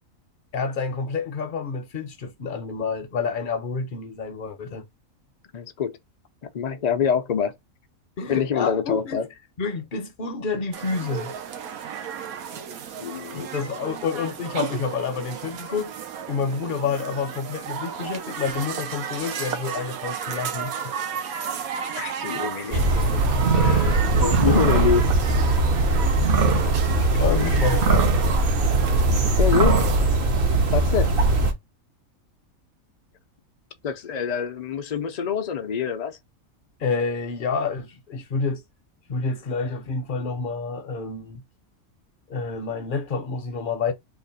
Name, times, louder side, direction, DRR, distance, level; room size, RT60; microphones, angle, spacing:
voice 1, 0.5-4.9 8.2-9.2 9.6-11.3 13.3-15.9 16.3-21.2 23.6-24.9 27.2-28.1 36.8-38.6 39.1-41.4 42.3-43.9, left 5 dB, 50° left, 0.7 m, -29 dB
voice 2, 5.5-6.0 6.5-7.5 8.3-9.3 12.9-13.5 21.9-22.9 24.2-25.1 26.9-27.5 29.4-29.8 30.7-31.1 33.8-36.2, left 7 dB, 90° left, 0.3 m, -25 dB
sound 1, 10.7-30.1, right 7 dB, 85° right, 1.2 m, -33 dB
sound 2, 22.7-31.5, right 2 dB, 50° right, 0.9 m, -20 dB
3.0 x 2.4 x 3.9 m
omnidirectional pair, 1.5 m